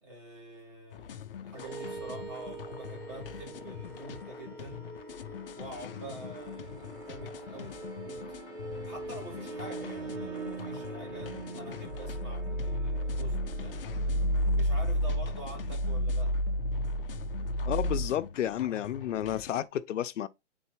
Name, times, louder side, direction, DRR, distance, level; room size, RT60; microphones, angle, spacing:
voice 1, 0.0-4.8 5.5-8.2 8.8-13.8 14.5-16.3, right 1 dB, 25° right, 2.3 m, -46 dB
sound 1, 0.9-19.7, left 9 dB, 50° left, 0.5 m, -45 dB
sound 2, 1.5-18.1, equal, 45° right, 4.5 m, -34 dB
voice 2, 17.7-20.3, left 11 dB, 90° left, 0.6 m, -31 dB
9.1 x 4.0 x 3.0 m
hypercardioid pair, 175°, 36 cm